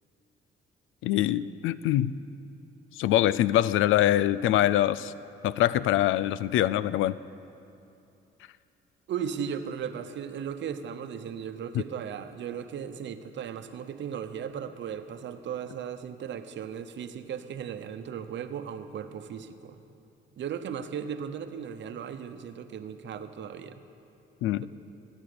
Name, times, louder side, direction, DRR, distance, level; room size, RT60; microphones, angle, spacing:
voice 1, 1.0-2.2 3.0-5.1 5.4-7.2 24.4-24.7, left 13 dB, 80° left, 18 dB, 0.4 m, -24 dB
voice 2, 9.1-19.8 20.4-23.8, right 8 dB, 65° right, 9 dB, 0.9 m, -36 dB
17.0 x 10.0 x 6.8 m, 2.7 s
cardioid pair, 90°, 20 cm